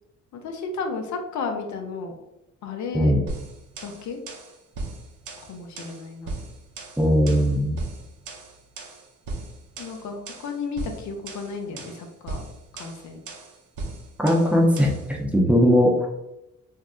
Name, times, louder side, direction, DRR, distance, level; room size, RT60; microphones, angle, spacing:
voice 1, 0.3-2.1 2.6-3.1 3.8-4.2 5.5-6.3 9.8-12.4 12.7-13.2, left 4 dB, 70° left, 4 dB, 0.6 m, -33 dB
sound 1, 3.3-15.1, right 2 dB, 80° right, 0.7 m, -38 dB
voice 2, 7.0-7.8 14.2-16.1, equal, 5° right, -2 dB, 0.7 m, -19 dB
2.7 x 2.0 x 3.6 m, 0.90 s
cardioid pair, 90°, 30 cm